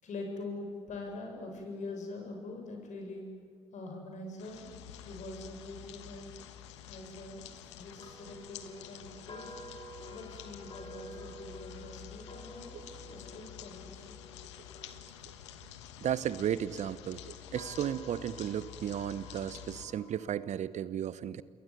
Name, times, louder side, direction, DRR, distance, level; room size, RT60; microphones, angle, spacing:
voice 1, 0.0-3.2 3.7-6.3 6.9-9.6 10.1-14.2, left 2 dB, 55° left, 3 dB, 7.2 m, -44 dB
sound 1, 4.4-19.9, left 10 dB, 80° left, 1.3 m, -49 dB
sound 2, 8.0-16.2 16.9-20.4, equal, 35° left, 5.5 m, -51 dB
voice 2, 16.0-21.4, right 10 dB, 55° right, 18 dB, 0.9 m, -34 dB
28.0 x 22.0 x 9.5 m, 2.1 s
hypercardioid pair, 45°, 15 cm